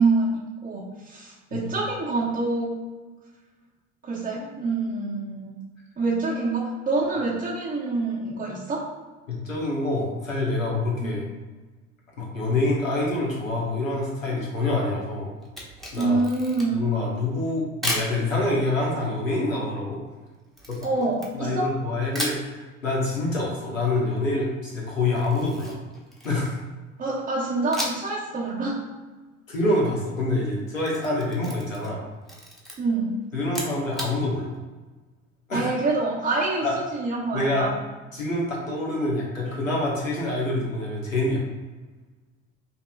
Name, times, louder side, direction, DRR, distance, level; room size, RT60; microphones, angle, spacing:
voice 1, 0.0-2.8 4.0-5.6 6.0-8.9 11.0-11.1 15.9-16.9 20.8-21.8 27.0-28.8 32.8-33.2 35.5-37.7, right 3 dB, 20° right, -6 dB, 0.9 m, -26 dB
voice 2, 9.4-11.2 12.2-15.3 15.9-16.2 16.7-20.0 20.7-25.7 26.2-26.6 29.5-32.0 33.3-34.5 35.5-35.7 36.6-36.8 37.3-37.7 38.1-41.4, left 2 dB, 90° left, -4 dB, 1.1 m, -26 dB
Camera, 15.4-16.9 17.8-18.1 20.6-21.7 22.1-22.5 25.1-26.6 27.7-28.2 28.5-28.6 30.6-32.0 32.2-32.8 33.4-34.1, equal, ahead, 1.0 m, -33 dB
5.3 x 2.9 x 2.3 m, 1.3 s
figure-of-eight pair, 65°, 39 cm